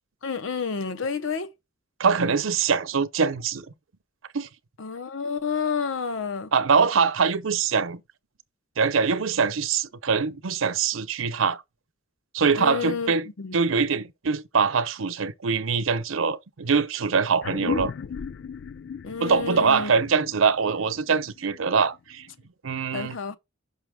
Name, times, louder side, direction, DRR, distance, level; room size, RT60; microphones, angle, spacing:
voice 1, 0.2-1.5 4.8-6.5 12.5-13.6 17.6-17.7 19.0-19.9 22.9-23.4, left 5 dB, 75° left, 0.7 m, -30 dB
voice 2, 2.0-3.7 4.3-4.5 6.5-8.0 8.8-11.6 12.3-13.3 13.5-17.9 19.2-22.3 22.6-23.4, right 5 dB, 85° right, 0.7 m, -23 dB
sound 1, 17.4-22.3, left 6 dB, 55° left, 0.3 m, -36 dB
5.9 x 5.6 x 3.5 m
head